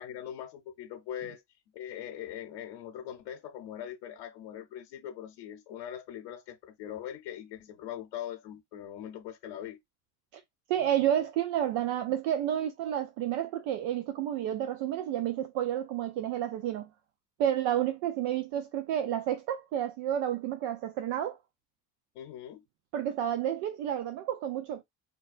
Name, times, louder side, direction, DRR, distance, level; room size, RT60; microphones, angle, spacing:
voice 1, 0.0-1.4 1.7-9.8 22.1-22.6, left 10 dB, 80° left, 0.8 m, -41 dB
voice 2, 10.7-16.9 17.4-21.4 22.9-24.8, right 10 dB, 75° right, 0.6 m, -30 dB
5.0 x 2.3 x 2.4 m
hypercardioid pair, 50°, 48 cm